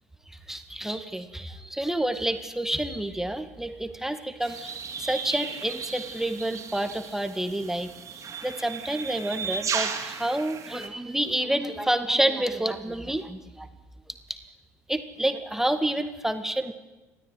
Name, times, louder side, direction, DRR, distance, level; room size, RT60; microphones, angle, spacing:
voice 1, 0.3-7.9 8.4-13.7 14.3-14.4 14.9-16.7, right 1 dB, 5° right, 8 dB, 1.9 m, -29 dB
sound 1, 4.4-10.9, right 6 dB, 40° right, 3.0 m, -35 dB
20.5 x 14.0 x 9.6 m, 1.1 s
figure-of-eight pair, 55°, 8 cm